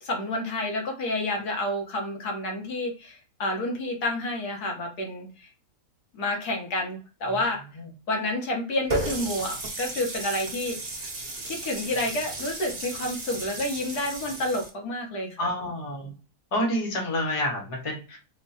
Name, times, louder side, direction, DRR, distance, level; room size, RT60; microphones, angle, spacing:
voice 1, 0.0-5.5 6.1-7.6 8.1-10.9 11.4-15.4, left 1 dB, 70° left, 1 dB, 1.5 m, -29 dB
Water tap faucet, 8.9-14.7, right 1 dB, 30° right, 0.9 m, -34 dB
voice 2, 15.4-16.1 16.5-18.2, left 1 dB, 25° left, -1 dB, 1.0 m, -28 dB
3.6 x 2.1 x 4.2 m, 0.34 s
omnidirectional pair, 1.8 m